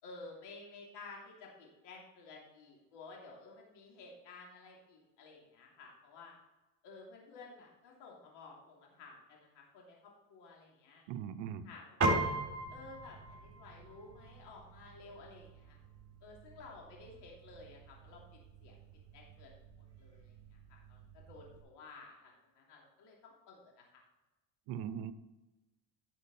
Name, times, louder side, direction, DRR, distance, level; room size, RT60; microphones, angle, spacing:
voice 1, 0.0-6.3 6.8-11.0 11.6-12.3 12.7-15.8 16.2-18.7 19.1-19.5 19.8-20.3 20.7-24.0, left 3 dB, 65° left, -2 dB, 3.1 m, -54 dB
voice 2, 11.1-11.7 24.7-25.1, right 9 dB, 75° right, 13 dB, 0.9 m, -40 dB
Piano, 12.0-21.6, right 2 dB, 35° right, 3.8 m, -40 dB
11.0 x 6.8 x 4.2 m, 1.1 s
supercardioid pair, 95°, 43 cm